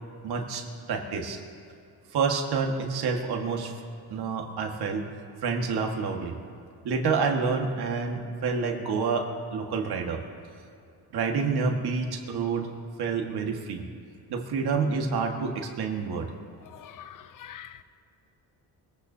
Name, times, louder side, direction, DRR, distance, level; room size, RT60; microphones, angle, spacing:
voice 1, 0.2-1.4 2.1-3.7 4.1-5.0 5.4-6.3 6.8-10.2 11.1-12.7 13.0-13.8 14.3-16.3, right 5 dB, 70° right, 1.7 m, -28 dB
voice 2, 16.6-17.8, left 10 dB, 50° left, 0.8 m, -45 dB
22.0 x 15.5 x 2.8 m
cardioid pair, 115°, 40 cm